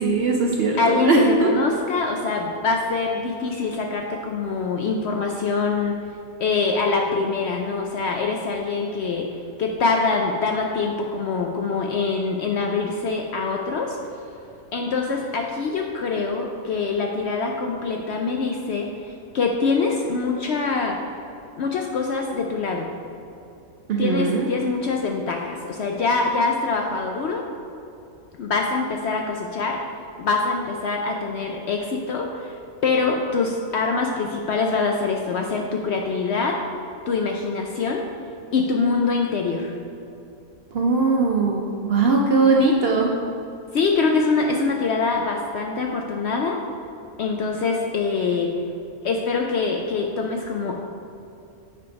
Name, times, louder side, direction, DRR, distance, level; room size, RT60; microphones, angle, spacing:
voice 1, 0.0-1.5 23.9-24.5 40.7-43.1, right 3 dB, 60° right, 0 dB, 0.6 m, -20 dB
voice 2, 0.8-6.0 6.4-14.0 14.7-21.0 21.6-22.9 24.0-27.4 28.4-29.8 30.2-32.6 32.8-36.6 37.1-38.0 38.5-39.8 43.7-46.6 47.2-48.5 49.0-50.8, left 4 dB, 65° left, 1 dB, 0.7 m, -24 dB
8.5 x 3.4 x 5.1 m, 2.6 s
omnidirectional pair, 1.5 m